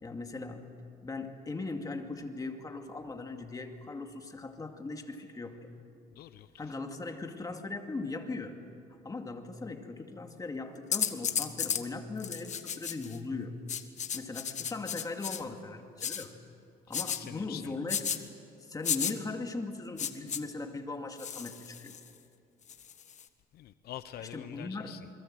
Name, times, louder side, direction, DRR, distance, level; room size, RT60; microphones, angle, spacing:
voice 1, 0.0-0.7 1.0-5.7 6.6-8.6 9.0-13.6 14.1-16.3 16.9-18.1 18.6-21.9 24.2-25.0, left 3 dB, 20° left, 4 dB, 2.3 m, -39 dB
voice 2, 6.2-6.8 17.0-17.7 23.5-25.1, left 12 dB, 70° left, 12 dB, 0.8 m, -46 dB
sound 1, 10.9-11.8 12.2-13.2 13.7-15.4 16.0-16.3 16.9-17.2 17.9-18.2 18.8-19.1 20.0-20.4 21.2-22.1 22.7-23.2, left 8 dB, 45° left, 1.5 m, -33 dB
28.5 x 22.0 x 7.8 m, 2.4 s
cardioid pair, 110°, 17 cm